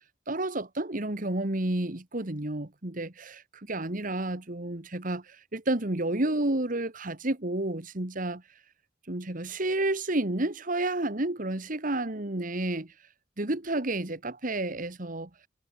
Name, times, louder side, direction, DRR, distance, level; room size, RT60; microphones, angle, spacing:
voice 1, 0.3-3.4 3.7-5.2 5.5-8.4 9.1-12.9 13.4-15.3, right 2 dB, 50° right, 2.0 m, -30 dB
head